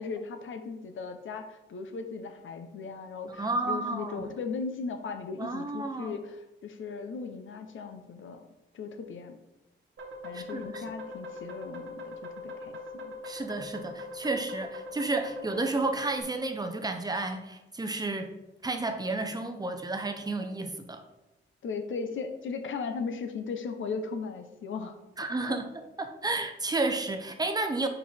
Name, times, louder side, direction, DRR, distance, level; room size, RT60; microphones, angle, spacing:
voice 1, 0.0-8.4 8.7-9.4 10.2-13.2 21.6-25.0 25.5-25.6, left 5 dB, 85° left, 7 dB, 0.8 m, -37 dB
voice 2, 3.3-4.2 5.4-6.2 10.3-10.8 13.2-18.3 18.6-21.0 25.2-25.7 26.0-27.9, right 2 dB, 20° right, 6 dB, 0.6 m, -31 dB
sound 1, 10.0-16.2, left 2 dB, 80° right, 1.2 m, -41 dB
5.3 x 4.8 x 4.2 m, 0.96 s
wide cardioid pair, 165°, 20 cm